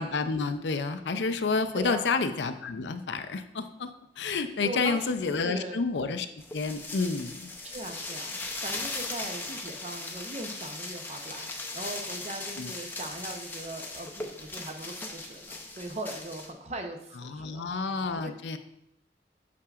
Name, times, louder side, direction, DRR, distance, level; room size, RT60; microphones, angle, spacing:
voice 1, 0.0-3.9 4.2-6.3 6.5-7.5 12.6-12.7 17.2-18.6, left 4 dB, 80° left, 9 dB, 0.5 m, -29 dB
voice 2, 1.7-2.1 4.6-5.1 5.4-5.8 7.6-18.3, right 1 dB, 35° right, 5 dB, 0.6 m, -40 dB
sound 1, 6.4-16.5, left 2 dB, 10° left, 0.5 m, -38 dB
8.5 x 5.9 x 2.4 m, 0.80 s
head